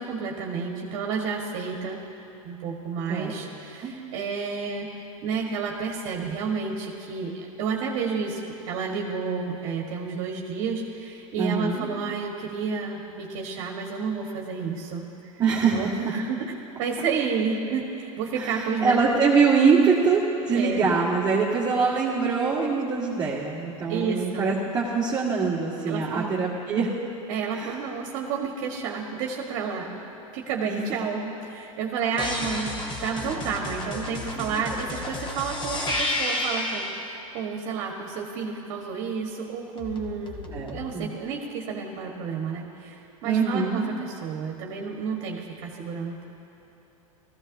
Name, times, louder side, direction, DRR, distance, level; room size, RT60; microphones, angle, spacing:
voice 1, 0.0-2.0 2.4-15.3 15.7-16.5 16.8-19.2 20.5-20.8 23.9-24.5 25.8-26.3 27.3-30.0 30.3-32.7 33.0-46.2, right 5 dB, 55° right, 1 dB, 1.4 m, -31 dB
voice 2, 11.4-11.9 15.4-15.9 18.4-26.9 27.5-27.8 30.6-30.8 40.5-41.1 43.2-43.9, right 5 dB, 20° right, -8 dB, 1.6 m, -23 dB
sound 1, 32.2-37.0 39.8-40.9, left 1 dB, 25° left, 1.4 m, -31 dB
17.0 x 14.5 x 2.7 m, 2.9 s
hypercardioid pair, 105°, 18 cm